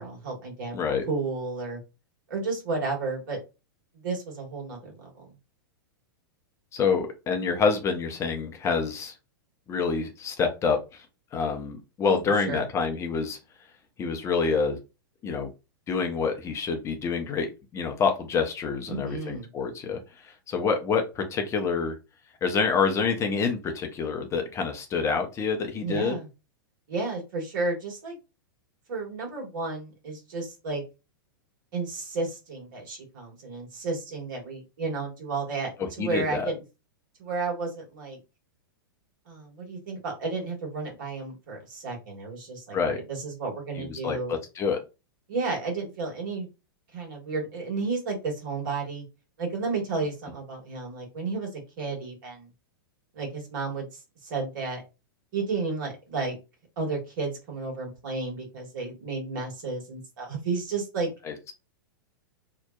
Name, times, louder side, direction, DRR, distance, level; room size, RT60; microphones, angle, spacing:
voice 1, 0.0-0.8 1.1-1.8 2.3-3.4 3.9-5.2 12.0-12.2 12.4-12.7 18.9-19.5 25.8-26.3 26.9-28.2 28.9-30.8 31.7-35.7 36.0-36.6 37.2-38.2 39.3-44.3 45.3-46.5 46.9-49.0 49.4-52.5 53.1-54.8 55.3-56.4 56.8-61.1, right 3 dB, 60° right, 0 dB, 1.3 m, -32 dB
voice 2, 0.7-1.0 6.7-9.1 9.7-11.1 11.3-13.4 14.0-14.8 15.2-15.5 15.9-17.5 17.7-22.0 22.4-26.2 36.0-36.5 42.7-43.0 43.8-44.8 61.3-61.4, left 5 dB, 25° left, 4 dB, 0.5 m, -27 dB
2.7 x 2.1 x 2.2 m, 0.28 s
hypercardioid pair, 105°, 12 cm